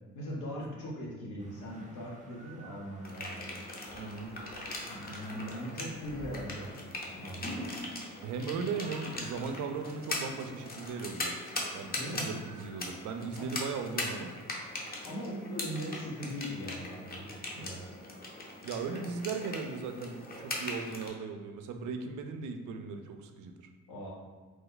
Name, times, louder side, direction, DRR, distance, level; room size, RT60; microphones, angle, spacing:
voice 1, 0.1-3.5 4.9-7.5 11.9-12.3 13.4-13.5 15.0-17.3 17.5-18.0 23.9-24.1, equal, 85° left, -4 dB, 1.1 m, -40 dB
sound 1, 1.4-12.8, right 2 dB, 25° right, 0.6 m, -54 dB
sound 2, 3.0-21.1, left 2 dB, 30° left, 0.7 m, -40 dB
voice 2, 3.9-4.3 8.2-11.4 11.7-14.3 18.6-23.7, right 5 dB, 80° right, 6 dB, 0.5 m, -37 dB
3.0 x 2.1 x 3.8 m, 1.4 s
cardioid pair, 90°, 30 cm